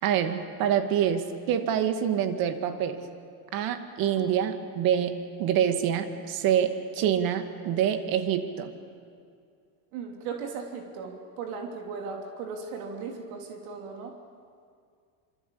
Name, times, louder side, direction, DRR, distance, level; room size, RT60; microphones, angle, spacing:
voice 1, 0.0-3.0 3.5-8.7, right 9 dB, 55° right, 8 dB, 2.3 m, -26 dB
voice 2, 9.9-14.2, right 5 dB, 85° right, 2 dB, 3.4 m, -37 dB
26.0 x 25.5 x 8.6 m, 2.2 s
cardioid pair, 145°, 41 cm